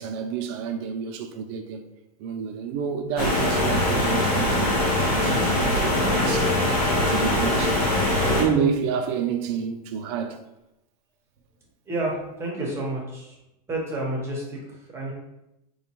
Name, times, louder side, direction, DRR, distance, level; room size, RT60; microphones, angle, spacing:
voice 1, 0.0-1.8 2.2-4.7 5.0-6.5 6.9-7.8 8.2-10.4, right 6 dB, 45° right, 0.4 m, -29 dB
sound 1, 3.2-8.4, left 1 dB, 65° left, 1.4 m, -22 dB
voice 2, 11.9-13.4 13.7-15.1, right 1 dB, 15° right, 0.8 m, -30 dB
4.1 x 2.2 x 3.0 m
supercardioid pair, 150°, 20 cm